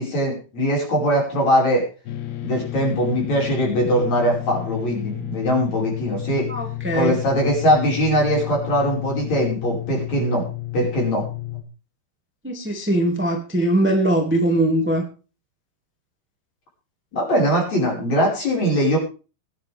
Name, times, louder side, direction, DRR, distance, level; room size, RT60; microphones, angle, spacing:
voice 1, 0.0-1.9 2.4-6.5 6.9-10.5 10.7-11.2 17.1-19.0, equal, 40° left, -2 dB, 6.4 m, -21 dB
sound 1, 2.1-11.6, left 15 dB, 75° left, 3.2 m, -31 dB
voice 2, 6.5-7.1 12.4-15.0, right 1 dB, 5° right, 2 dB, 1.0 m, -21 dB
22.0 x 10.0 x 3.5 m, 0.35 s
omnidirectional pair, 4.7 m